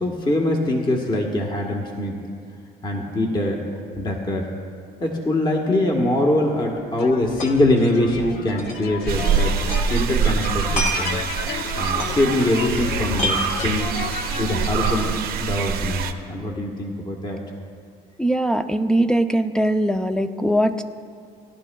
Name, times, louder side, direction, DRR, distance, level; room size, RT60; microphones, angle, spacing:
voice 1, 0.0-2.1 2.8-3.6 3.9-4.5 5.0-11.2 11.8-13.9 14.4-15.1 15.4-17.4, left 1 dB, 25° left, 0 dB, 1.3 m, -23 dB
sound 1, 6.8-6.9 7.1-7.7 8.0-8.1 8.6-9.9 10.2-12.8 13.0-14.1, equal, 50° left, 1.7 m, -29 dB
sound 2, 7.0-15.2, left 5 dB, 75° left, 0.8 m, -32 dB
sound 3, 9.1-16.1, right 7 dB, 65° right, 0.8 m, -25 dB
voice 2, 18.2-20.8, right 1 dB, 5° left, 8 dB, 0.5 m, -21 dB
18.5 x 11.5 x 2.3 m, 2.3 s
cardioid pair, 110°, 17 cm